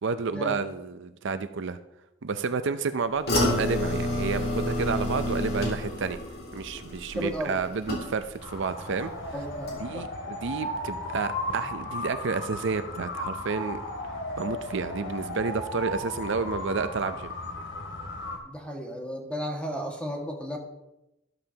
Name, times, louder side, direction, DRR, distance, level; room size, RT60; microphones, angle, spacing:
voice 1, 0.0-1.8 2.2-6.2 6.5-9.1 9.8-13.8 14.4-17.3, right 4 dB, 65° right, 10 dB, 0.5 m, -30 dB
sound 1, 3.3-8.5 8.8-9.3 9.7-9.8, left 1 dB, 55° left, 3.2 m, -29 dB
voice 2, 7.1-7.6 9.3-10.1 18.4-20.6, equal, 5° left, 0 dB, 1.8 m, -34 dB
sound 2, 8.4-18.4, left 1 dB, 70° left, 2.4 m, -35 dB
13.0 x 12.5 x 2.9 m, 0.91 s
head